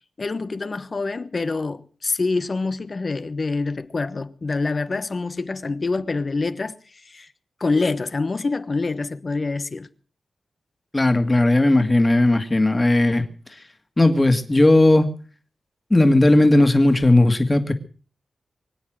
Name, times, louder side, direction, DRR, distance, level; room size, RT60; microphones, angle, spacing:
voice 1, 0.2-6.8 7.0-7.3 7.6-9.9, left 3 dB, 45° left, 1.1 m, -26 dB
voice 2, 10.9-13.2 14.0-15.1 15.9-17.7, left 2 dB, 20° left, 2.1 m, -16 dB
24.5 x 8.5 x 6.3 m
wide cardioid pair, 85°, 0 cm